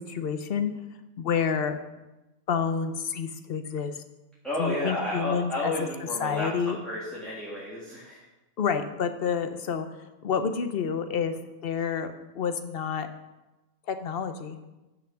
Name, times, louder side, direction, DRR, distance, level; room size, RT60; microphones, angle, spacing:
voice 1, 0.1-0.7 1.2-1.8 2.5-4.0 4.6-5.9 6.2-6.8 8.6-9.9 10.2-11.4 11.6-13.1 13.9-14.6, left 6 dB, 55° left, 9 dB, 0.8 m, -29 dB
voice 2, 4.4-6.5 6.9-8.2, left 1 dB, ahead, -8 dB, 1.7 m, -31 dB
9.2 x 6.0 x 6.2 m, 1.0 s
omnidirectional pair, 1.5 m